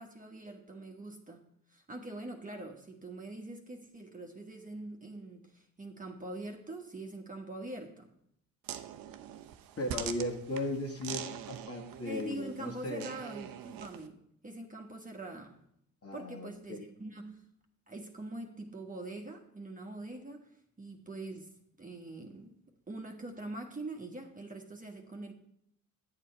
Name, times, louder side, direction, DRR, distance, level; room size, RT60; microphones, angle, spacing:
voice 1, 0.0-1.4 1.7-8.1 12.0-15.6 16.1-17.4 17.9-20.5 20.8-21.5 21.8-22.5 22.9-25.3, right 2 dB, 20° right, 2 dB, 1.4 m, -43 dB
sound 1, 8.6-14.1, right 10 dB, 60° right, 0.8 m, -44 dB
voice 2, 9.8-13.1 16.0-16.9, left 1 dB, 35° left, 2 dB, 2.0 m, -37 dB
10.0 x 7.5 x 4.4 m, 0.73 s
hypercardioid pair, 55°, 40 cm